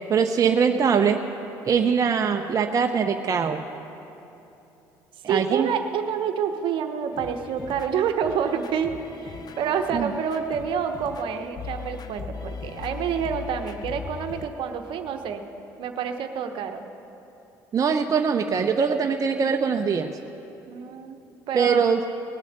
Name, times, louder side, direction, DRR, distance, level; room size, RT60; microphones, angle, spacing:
voice 1, 0.1-1.2 1.6-3.6 5.2-5.7 9.9-10.1 17.7-20.1 21.5-22.0, right 6 dB, 40° right, 4 dB, 0.7 m, -22 dB
voice 2, 5.3-8.9 9.2-15.4 15.8-16.8 20.7-21.2 21.5-22.0, right 7 dB, 60° right, 6 dB, 1.0 m, -28 dB
sound 1, 7.1-14.5, left 6 dB, 45° left, 0.8 m, -39 dB
19.0 x 8.4 x 6.6 m, 2.9 s
hypercardioid pair, 65°, 9 cm